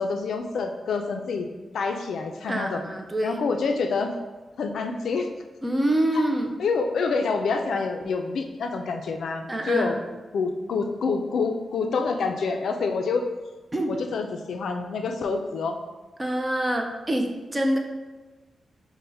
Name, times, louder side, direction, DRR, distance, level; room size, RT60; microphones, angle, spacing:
voice 1, 0.0-1.5 1.7-2.8 3.2-4.1 4.6-5.3 6.1-6.2 6.6-10.0 10.3-13.2 13.9-15.8, left 4 dB, 75° left, 5 dB, 0.3 m, -27 dB
voice 2, 2.5-3.4 5.6-6.6 9.5-10.0 13.7-13.9 16.2-17.8, right 1 dB, 15° right, 3 dB, 0.4 m, -26 dB
5.3 x 2.1 x 3.3 m, 1.2 s
wide cardioid pair, 175°, 0 cm